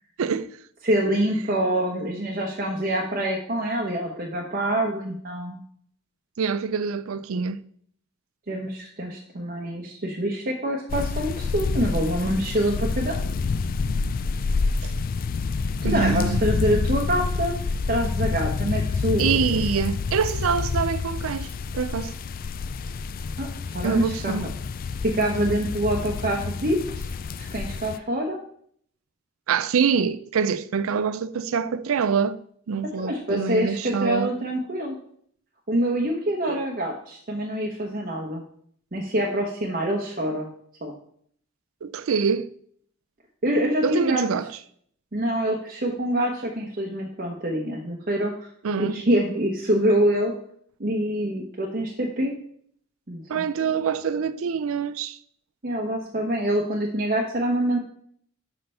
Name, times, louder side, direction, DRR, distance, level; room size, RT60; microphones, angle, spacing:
voice 1, 0.2-0.5 6.4-7.6 14.8-14.9 15.8-16.4 19.2-22.1 23.8-24.5 29.5-32.4 32.7-34.4 36.4-36.6 41.8-42.5 43.8-44.5 48.6-49.0 53.3-55.2, right 6 dB, 80° right, 0.4 m, -25 dB
voice 2, 0.8-5.6 8.5-13.3 15.8-17.5 17.9-19.3 23.4-24.5 25.0-27.1 27.5-28.4 33.0-35.0 35.7-38.4 38.9-40.5 40.8-40.9 43.4-44.2 45.1-48.5 48.8-50.3 50.8-52.3 53.1-53.5 55.6-57.8, right 1 dB, 45° right, 1.0 m, -25 dB
sound 1, 10.9-28.0, left 4 dB, 45° left, 0.3 m, -28 dB
5.8 x 5.4 x 5.5 m
head